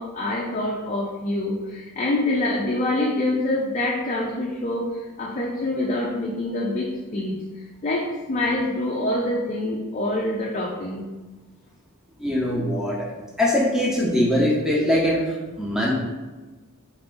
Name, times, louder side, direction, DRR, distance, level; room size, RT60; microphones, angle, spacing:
voice 1, 0.0-11.1, left 1 dB, 35° left, -3 dB, 0.4 m, -26 dB
voice 2, 12.2-13.1 13.4-15.9, left 1 dB, 5° right, -5 dB, 0.7 m, -22 dB
3.3 x 2.6 x 3.8 m, 1.2 s
head